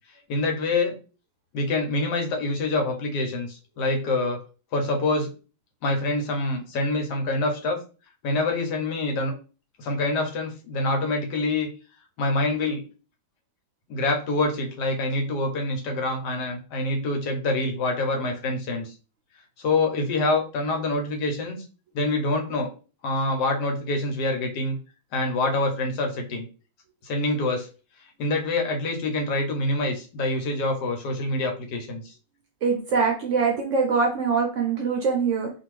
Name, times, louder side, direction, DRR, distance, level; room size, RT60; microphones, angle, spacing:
voice 1, 0.3-1.0 1.5-4.4 4.7-5.3 5.8-7.8 8.2-9.3 9.8-11.7 12.2-12.8 13.9-18.9 19.6-21.6 21.9-22.7 23.0-24.8 25.1-26.5 27.0-27.7 28.2-32.1, left 2 dB, 85° left, 3 dB, 1.3 m, -26 dB
voice 2, 32.6-35.5, right 5 dB, 65° right, 1 dB, 0.8 m, -23 dB
2.6 x 2.5 x 3.0 m, 0.35 s
omnidirectional pair, 1.8 m